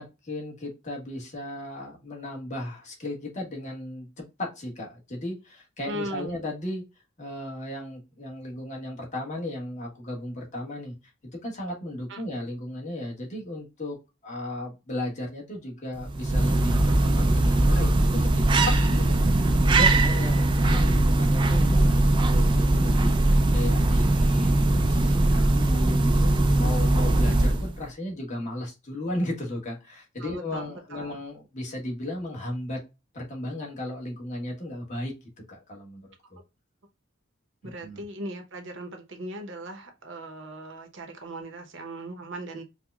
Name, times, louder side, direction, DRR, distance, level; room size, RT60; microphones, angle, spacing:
voice 1, 0.0-4.1 4.4-6.8 7.2-10.9 11.4-14.0 14.2-18.3 18.6-32.8 33.1-35.1 35.5-36.4 37.6-38.0, left 1 dB, 35° left, 1.2 m, -35 dB
voice 2, 5.8-6.4 12.1-12.2 30.2-31.2 37.6-42.6, right 1 dB, 65° right, 0.8 m, -38 dB
sound 1, 16.0-27.8, right 2 dB, 25° right, 0.3 m, -21 dB
4.6 x 2.1 x 2.3 m
head